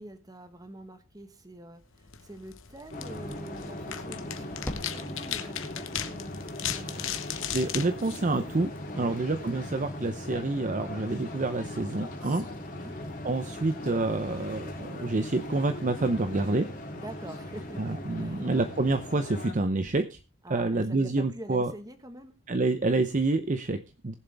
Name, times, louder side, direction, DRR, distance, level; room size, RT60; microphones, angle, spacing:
voice 1, 0.0-6.3 6.7-7.2 8.9-9.2 12.7-13.0 16.9-18.5 20.4-22.3, right 1 dB, 15° right, 8 dB, 1.4 m, -46 dB
sound 1, 2.0-9.0, left 10 dB, 60° left, 1.0 m, -38 dB
sound 2, 2.9-19.5, left 1 dB, 35° left, 3.3 m, -39 dB
sound 3, 4.4-10.3, equal, 10° left, 1.9 m, -48 dB
voice 2, 7.5-8.7 9.0-12.5 13.2-16.7 17.8-20.2 20.5-21.7 22.5-24.1, right 2 dB, 35° right, 9 dB, 0.6 m, -28 dB
19.5 x 7.3 x 3.4 m, 0.30 s
head